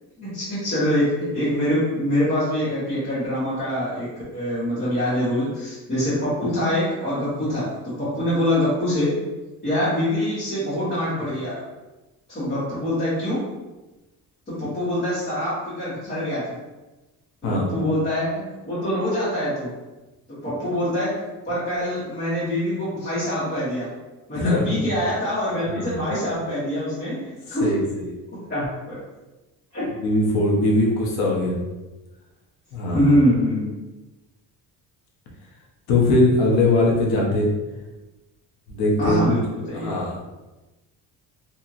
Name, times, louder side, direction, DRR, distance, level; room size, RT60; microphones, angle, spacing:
voice 1, 0.2-4.1 4.3-9.1 9.6-11.5 12.3-13.4 14.5-16.4 17.4-19.7 20.4-21.1 21.4-23.9 24.3-27.7 28.5-28.9 29.7-29.9 32.9-33.7 39.0-39.9, equal, 25° left, -13 dB, 1.3 m, -24 dB
voice 2, 24.3-24.8 25.7-25.9 27.6-27.8 30.0-31.6 32.7-33.1 35.9-37.5 38.7-39.2 39.7-40.2, left 2 dB, 85° left, -1 dB, 0.9 m, -20 dB
2.8 x 2.8 x 2.4 m, 1.1 s
cardioid pair, 150°, 37 cm